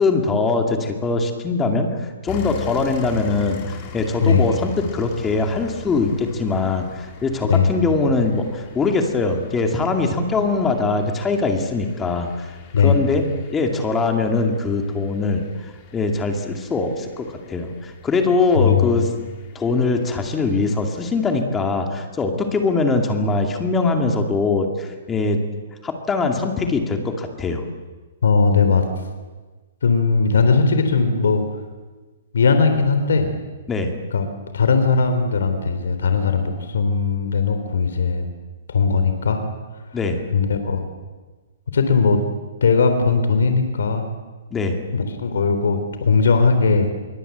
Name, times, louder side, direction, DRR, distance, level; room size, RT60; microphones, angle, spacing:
voice 1, 0.0-1.9 2.2-12.5 12.8-15.4 15.9-19.1 19.5-25.4 25.8-27.6 33.7-33.9 39.9-40.2 44.5-44.8, left 3 dB, 10° left, 4 dB, 2.3 m, -22 dB
sound 1, 2.3-21.4, left 6 dB, 25° left, 3.1 m, -40 dB
voice 2, 12.7-13.0 18.6-19.2 28.2-28.8 29.8-31.4 32.3-33.3 34.1-34.2 34.5-38.3 38.7-39.4 40.3-40.8 41.7-42.2 42.6-44.0 44.9-47.0, left 4 dB, 90° left, 8 dB, 3.7 m, -18 dB
26.5 x 23.0 x 8.1 m, 1.3 s
hypercardioid pair, 170°, 0 cm